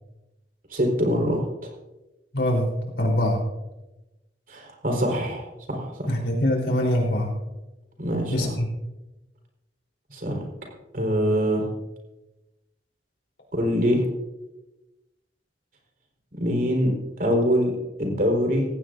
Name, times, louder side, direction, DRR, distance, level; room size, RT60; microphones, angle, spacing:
voice 1, 0.7-1.7 4.5-6.1 8.0-8.5 10.1-10.4 10.9-11.7 13.5-14.1 16.3-18.7, equal, 55° right, 1 dB, 4.5 m, -24 dB
voice 2, 2.3-2.7 3.0-3.4 6.1-7.3 8.3-8.7, left 1 dB, 80° left, -1 dB, 3.9 m, -23 dB
19.0 x 17.0 x 2.7 m, 1.0 s
head